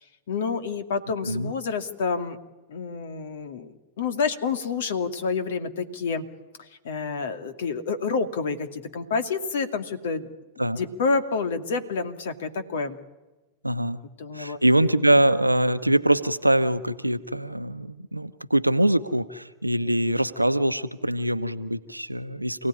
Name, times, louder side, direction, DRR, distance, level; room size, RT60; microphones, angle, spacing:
voice 1, 0.3-2.4 2.7-6.2 6.8-10.3 10.7-13.0 14.2-14.6, left 4 dB, 60° left, 8 dB, 2.4 m, -28 dB
voice 2, 13.6-14.0 14.3-22.7, right 1 dB, 85° right, 11 dB, 1.0 m, -23 dB
28.5 x 17.5 x 9.8 m, 1.1 s
figure-of-eight pair, 90°, 0 cm